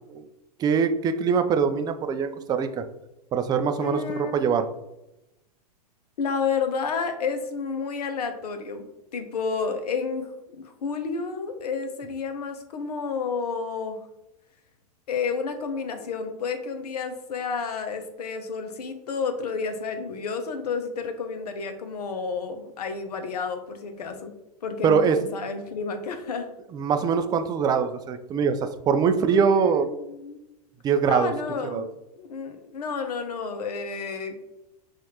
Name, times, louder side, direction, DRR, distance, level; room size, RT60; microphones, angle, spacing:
voice 1, 0.6-2.8 3.3-4.7 24.8-25.2 26.7-29.9 30.8-31.3 31.7-31.8, right 6 dB, 20° right, 8 dB, 0.3 m, -23 dB
voice 2, 3.8-4.5 6.2-8.9 9.1-14.0 15.1-24.3 24.6-26.5 29.3-30.4 31.1-31.9 32.2-34.4, left 5 dB, 75° left, 7 dB, 0.7 m, -31 dB
5.7 x 2.5 x 2.8 m, 0.92 s
hypercardioid pair, 105°, 20 cm